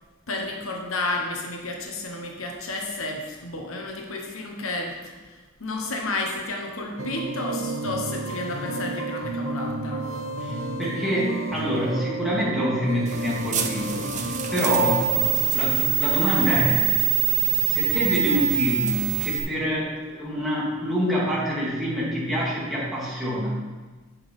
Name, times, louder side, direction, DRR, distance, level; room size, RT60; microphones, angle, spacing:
voice 1, 0.3-10.1, left 2 dB, 80° left, 1 dB, 1.2 m, -31 dB
sound 1, 7.0-15.4, right 2 dB, 85° right, 1.0 m, -31 dB
voice 2, 10.4-15.1 15.5-16.9 17.7-23.6, equal, ahead, -8 dB, 2.6 m, -26 dB
sound 2, 13.1-19.4, right 11 dB, 35° right, 0.8 m, -24 dB
8.4 x 5.9 x 5.4 m, 1.3 s
head